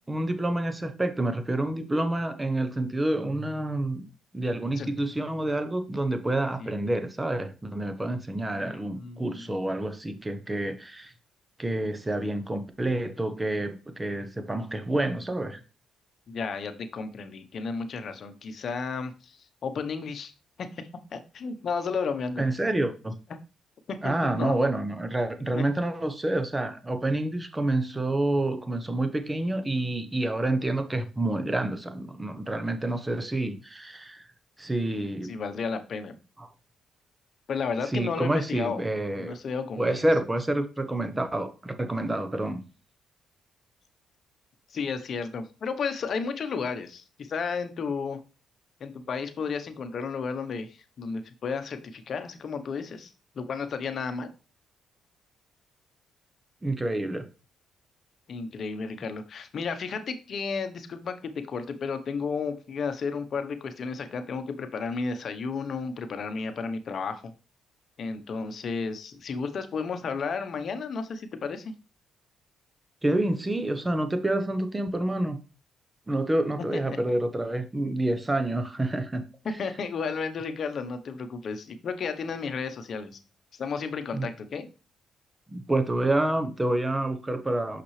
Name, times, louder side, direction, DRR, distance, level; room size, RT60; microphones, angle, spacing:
voice 1, 0.1-4.1 4.3-11.1 11.6-15.6 22.4-23.2 24.0-34.3 34.6-35.3 36.4-36.5 37.9-39.4 39.8-42.6 56.6-57.3 73.0-75.4 76.1-79.2 84.1-84.3 85.5-87.8, right 1 dB, 15° right, 1.0 m, -28 dB
voice 2, 6.6-7.0 8.6-9.5 16.3-20.3 20.6-22.4 23.9-24.5 25.5-25.6 35.2-36.2 37.5-38.8 39.2-40.0 44.7-48.2 48.8-54.3 58.3-67.3 68.0-71.7 76.9-77.0 79.6-83.2 83.6-84.7, left 5 dB, 55° left, 1.0 m, -33 dB
5.9 x 5.9 x 3.3 m
cardioid pair, 90°, 0 cm